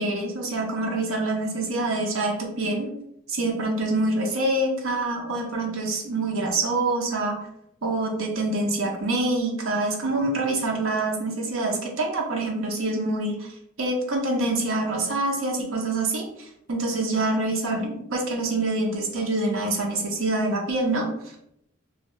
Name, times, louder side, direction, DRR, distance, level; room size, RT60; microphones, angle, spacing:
voice 1, 0.0-2.9 3.3-7.4 7.8-13.5 13.8-21.1, right 2 dB, 75° right, 1 dB, 0.6 m, -26 dB
2.7 x 2.0 x 3.0 m, 0.75 s
head